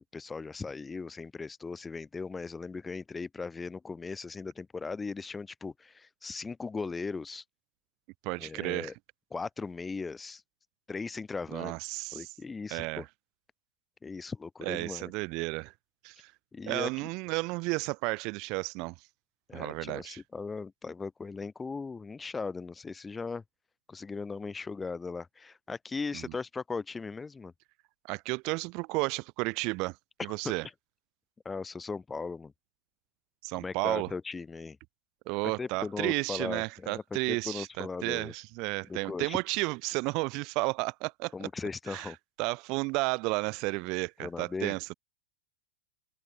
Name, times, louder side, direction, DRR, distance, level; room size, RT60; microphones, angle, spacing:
voice 1, 0.0-7.4 8.4-8.9 9.3-10.4 10.9-11.8 12.1-13.1 14.0-15.1 16.5-17.1 19.5-23.4 23.9-27.5 31.4-32.5 33.5-34.8 35.6-38.3 38.9-39.4 41.3-42.2 44.2-44.7, left 4 dB, 10° left, 2.2 m, -38 dB
voice 2, 8.2-8.9 11.5-12.3 12.7-13.0 14.6-15.7 16.0-16.3 16.7-18.9 19.5-20.2 28.1-30.0 30.2-30.7 33.4-34.1 35.3-41.3 41.9-42.1 42.4-44.9, right 27 dB, 45° right, 1.6 m, -32 dB
open air
hypercardioid pair, 125°, 0 cm